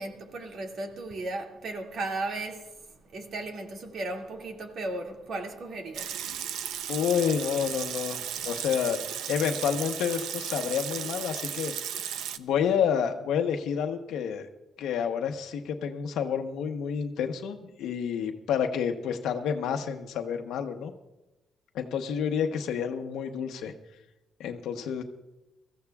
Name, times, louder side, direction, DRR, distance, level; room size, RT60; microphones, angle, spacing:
voice 1, 0.0-2.8 3.1-6.2, right 2 dB, 60° right, 2.2 m, -36 dB
Water tap faucet / Sink (filling or washing) / Liquid, 5.9-12.4, right 9 dB, 90° right, 0.6 m, -35 dB
voice 2, 6.9-9.0 9.3-11.7 12.4-14.5 14.8-20.9 21.7-23.7 24.4-25.0, left 8 dB, 85° left, 0.9 m, -29 dB
22.0 x 15.0 x 2.4 m
cardioid pair, 105°, 0 cm